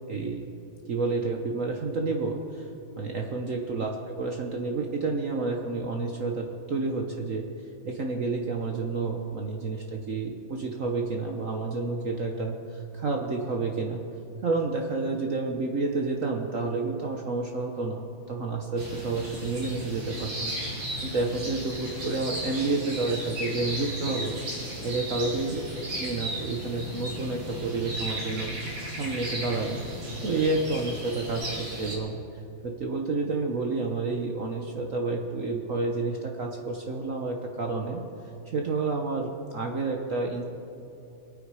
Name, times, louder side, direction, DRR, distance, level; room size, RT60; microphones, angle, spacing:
voice 1, 0.1-0.4 0.9-2.7 3.0-7.5 7.8-14.0 14.4-24.4 24.8-28.5 29.0-29.8 30.2-32.2 32.6-38.0 38.5-40.4, right 3 dB, 50° right, 2 dB, 1.1 m, -30 dB
sound 1, 18.8-32.0, equal, 70° right, 3.0 m, -35 dB
22.5 x 8.9 x 4.8 m, 2.7 s
omnidirectional pair, 2.2 m